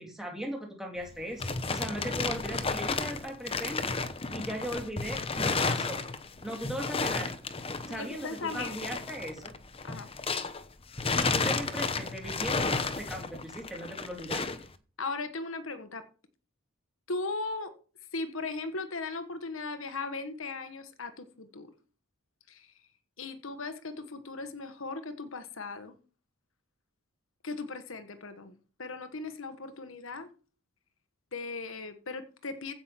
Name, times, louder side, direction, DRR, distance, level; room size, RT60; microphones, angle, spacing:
voice 1, 0.0-3.9 4.3-6.0 6.4-7.3 7.9-9.5 11.1-14.4, right 1 dB, ahead, 3.2 m, -38 dB
sound 1, 1.0-10.6 10.9-14.7, left 4 dB, 25° left, 1.0 m, -32 dB
voice 2, 7.9-9.0 9.8-10.1 15.0-16.0 17.1-17.7 18.1-21.7 22.5-22.7 23.2-25.9 27.4-28.5 28.8-30.3 31.3-32.7, left 3 dB, 70° left, 1.4 m, -37 dB
15.5 x 6.2 x 6.0 m
head